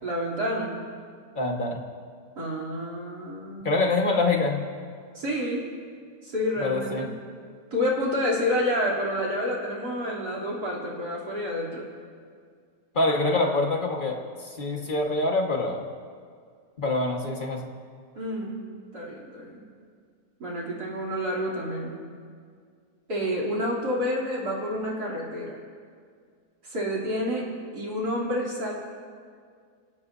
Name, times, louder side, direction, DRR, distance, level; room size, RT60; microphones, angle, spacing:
voice 1, 0.0-0.8 2.4-3.7 5.1-5.7 6.2-7.1 7.7-11.8 18.2-18.7 18.9-19.6 20.4-22.0 23.1-25.6 26.6-28.7, equal, 75° right, -5 dB, 3.8 m, -29 dB
voice 2, 1.3-1.8 3.6-4.7 6.6-7.1 12.9-15.8 16.8-17.6, left 2 dB, 30° left, 1 dB, 1.6 m, -25 dB
26.5 x 16.0 x 2.7 m, 2.1 s
omnidirectional pair, 1.7 m